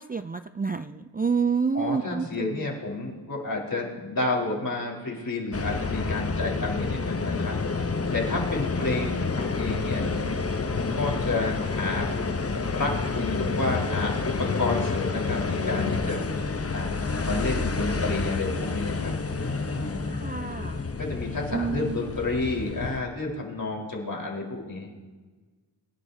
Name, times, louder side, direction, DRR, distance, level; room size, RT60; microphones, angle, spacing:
voice 1, 0.0-2.7 20.0-20.8 21.5-22.0, right 5 dB, 20° right, 9 dB, 0.4 m, -29 dB
voice 2, 1.7-7.6 8.1-10.1 10.7-12.1 12.7-16.3 16.7-16.9 17.2-20.2 21.0-24.9, left 2 dB, 45° left, -2 dB, 4.5 m, -30 dB
sound 1, 5.5-23.0, left 4 dB, 30° left, 0.9 m, -29 dB
25.0 x 11.0 x 2.8 m, 1.4 s
cardioid pair, 55°, 47 cm